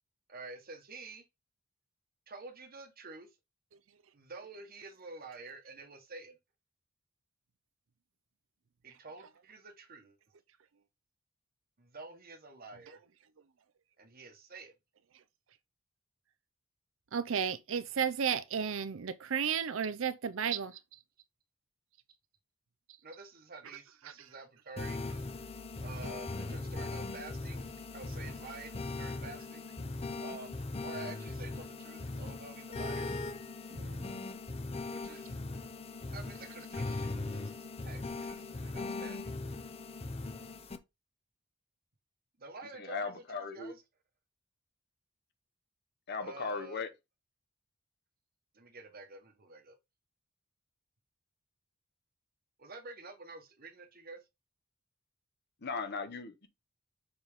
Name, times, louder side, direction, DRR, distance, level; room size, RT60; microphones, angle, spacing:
voice 1, 0.3-1.2 2.3-3.3 4.1-6.4 8.8-10.2 11.8-13.0 14.0-14.7 23.0-25.0 25.8-27.7 27.9-29.7 30.2-33.1 34.9-35.4 36.1-37.5 37.8-39.3 42.4-43.8 46.2-46.8 48.5-49.7 52.6-54.2, right 3 dB, 45° right, 1.2 m, -49 dB
voice 2, 17.1-21.0 24.0-24.3 25.9-26.1 33.7-34.3, right 7 dB, 65° right, 0.5 m, -34 dB
sound 1, 24.8-40.8, left 3 dB, 30° left, 0.7 m, -39 dB
voice 3, 42.7-43.7 46.1-46.9 55.6-56.5, left 4 dB, 55° left, 1.0 m, -37 dB
6.9 x 4.0 x 3.5 m
head